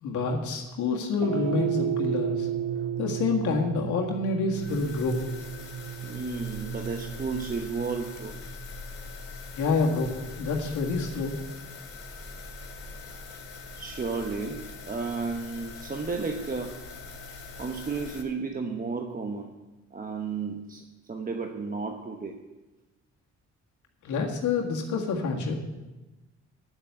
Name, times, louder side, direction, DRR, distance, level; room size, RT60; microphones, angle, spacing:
voice 1, 0.0-2.5 3.0-5.2 9.5-11.3 24.0-25.6, left 4 dB, 80° left, 0 dB, 1.8 m, -27 dB
sound 1, 1.2-9.7, right 10 dB, 90° right, 0.9 m, -33 dB
sound 2, 4.5-18.2, left 4 dB, 45° left, 2.6 m, -42 dB
voice 2, 6.0-8.4 13.8-16.8 17.6-19.5 19.9-22.4, right 4 dB, 30° right, 4 dB, 1.0 m, -33 dB
9.0 x 8.2 x 9.4 m, 1.1 s
cardioid pair, 90°, 30 cm